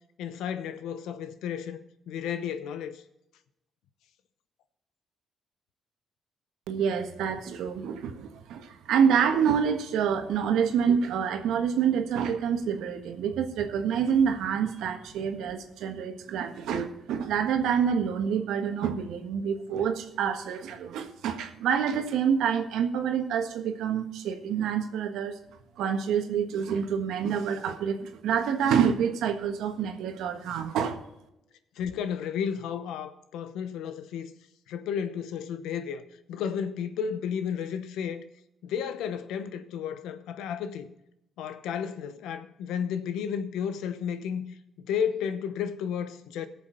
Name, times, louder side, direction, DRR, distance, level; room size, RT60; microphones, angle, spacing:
voice 1, 0.2-1.8 2.1-3.0 31.8-34.3 34.7-36.0 36.3-38.2 38.6-40.9 41.4-44.4 44.8-46.5, left 7 dB, 90° left, 0.9 m, -32 dB
voice 2, 6.7-25.4 25.8-31.0, right 7 dB, 85° right, 1.5 m, -27 dB
17.5 x 7.1 x 4.0 m
cardioid pair, 90°, 0 cm